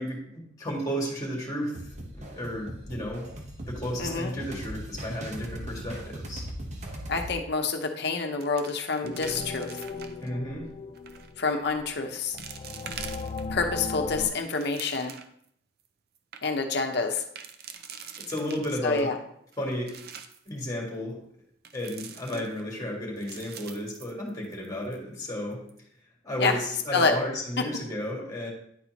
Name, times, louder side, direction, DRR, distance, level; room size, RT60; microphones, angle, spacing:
voice 1, 0.0-1.8 2.2-3.3 3.7-6.5 10.2-10.7 18.1-19.1 19.6-20.0 20.5-21.2 21.7-25.6 26.2-28.5, equal, 20° left, -2 dB, 2.0 m, -33 dB
sound 1, 1.8-7.4, right 1 dB, 40° right, 1.0 m, -39 dB
voice 2, 4.0-4.3 7.1-9.8 11.4-12.4 13.5-15.1 16.4-17.2 18.8-19.1 26.4-26.6 26.9-27.1, left 4 dB, 65° left, 4 dB, 0.8 m, -27 dB
sound 2, 7.6-7.9 8.2-10.3 10.9-11.3 11.9-12.0 12.4-13.7 14.2-15.4 15.8-15.9 16.1-16.4 17.1-19.0 19.5-20.5 21.6-22.8 23.2-24.7 24.9-25.0 25.5-25.8, right 7 dB, 60° right, 0.5 m, -44 dB
sound 3, 9.0-14.3, left 4 dB, 35° left, 0.3 m, -37 dB
10.0 x 4.3 x 2.9 m, 0.69 s
head